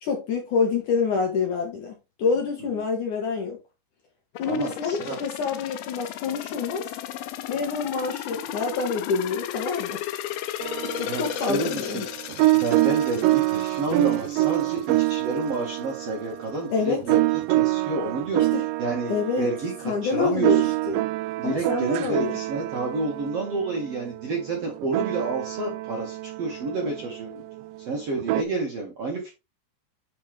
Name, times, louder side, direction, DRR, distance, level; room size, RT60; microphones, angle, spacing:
voice 1, 0.0-3.6 4.4-6.8 7.5-10.0 10.8-12.1 16.7-17.0 18.4-18.6 19.1-19.5 19.8-21.1 21.4-22.3, left 5 dB, 60° left, 2.4 m, -27 dB
sound 1, 4.4-15.1 15.5-15.6, left 11 dB, 85° left, 2.1 m, -35 dB
voice 2, 4.4-5.2 10.9-12.1 12.5-17.3 17.6-18.5 18.8-19.7 20.0-20.7 21.4-27.4 27.9-29.3, right 2 dB, 45° right, 2.1 m, -30 dB
sound 2, 10.6-28.4, right 19 dB, 80° right, 2.7 m, -26 dB
10.0 x 5.2 x 3.4 m
omnidirectional pair, 5.2 m